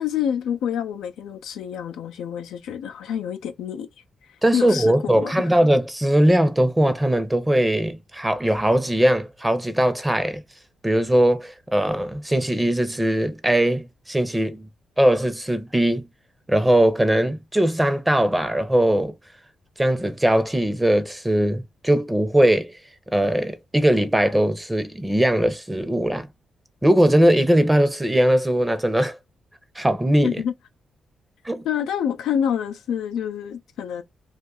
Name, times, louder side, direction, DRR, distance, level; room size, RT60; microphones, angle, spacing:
voice 1, 0.0-3.9 4.5-5.5 30.2-30.5 31.6-34.0, left 8 dB, 80° left, 0.4 m, -27 dB
voice 2, 4.4-10.4 10.8-14.7 15.0-16.1 16.5-19.1 19.8-22.7 23.1-26.3 26.8-29.2 29.8-30.4 31.4-31.6, right 1 dB, 15° right, 0.8 m, -20 dB
2.5 x 2.4 x 3.8 m
supercardioid pair, 50°, 0 cm